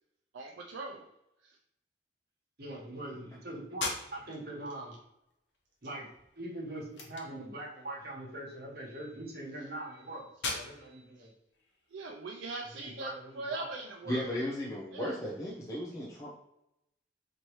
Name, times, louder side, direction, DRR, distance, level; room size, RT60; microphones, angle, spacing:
voice 1, 0.3-1.1 1.4-1.6 11.9-13.1 13.3-14.3 14.9-15.2, right 3 dB, 80° right, 0 dB, 0.4 m, -40 dB
voice 2, 2.6-4.9 5.8-6.1 6.3-10.2 10.5-11.3 12.7-13.7, right 1 dB, 60° right, -4 dB, 1.3 m, -42 dB
sound 1, 3.7-12.6, left 3 dB, 80° left, 0.9 m, -44 dB
voice 3, 14.1-16.3, left 1 dB, 20° left, -6 dB, 0.6 m, -35 dB
4.2 x 3.0 x 3.1 m, 0.84 s
head